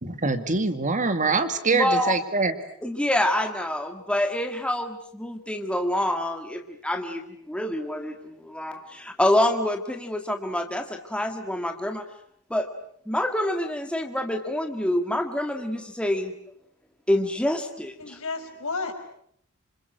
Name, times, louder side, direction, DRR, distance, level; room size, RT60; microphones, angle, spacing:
voice 1, 0.0-2.6, right 3 dB, 35° right, 9 dB, 2.1 m, -24 dB
voice 2, 1.7-2.1 2.8-12.0 12.5-12.7 13.1-16.3 17.1-18.2, left 1 dB, 5° left, 4 dB, 1.8 m, -26 dB
voice 3, 18.0-18.9, left 3 dB, 65° left, 5 dB, 5.2 m, -32 dB
27.0 x 26.5 x 7.8 m, 0.66 s
head